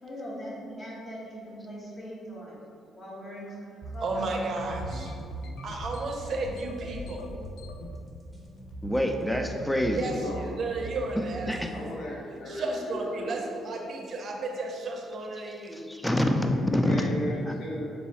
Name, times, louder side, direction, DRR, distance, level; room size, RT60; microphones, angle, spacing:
voice 1, 0.0-2.6 2.9-4.3, equal, 30° left, -7 dB, 1.4 m, -41 dB
sound 1, 3.8-11.8, right 3 dB, 15° right, 0.7 m, -41 dB
voice 2, 4.0-5.1 5.6-7.2 9.9-11.5 12.5-15.8, right 3 dB, 55° right, 2 dB, 0.6 m, -33 dB
sound 2, 4.7-8.0 8.4-8.9 9.2-9.5 9.8-10.1 10.7-10.9, left 2 dB, 85° left, 0.3 m, -42 dB
voice 3, 8.8-10.2 11.5-11.7 15.7-17.0, left 1 dB, 5° left, 3 dB, 0.3 m, -26 dB
voice 4, 11.7-13.7 16.4-17.9, left 1 dB, 65° left, -6 dB, 0.9 m, -35 dB
4.1 x 2.3 x 4.0 m, 2.5 s
cardioid pair, 90°, 0 cm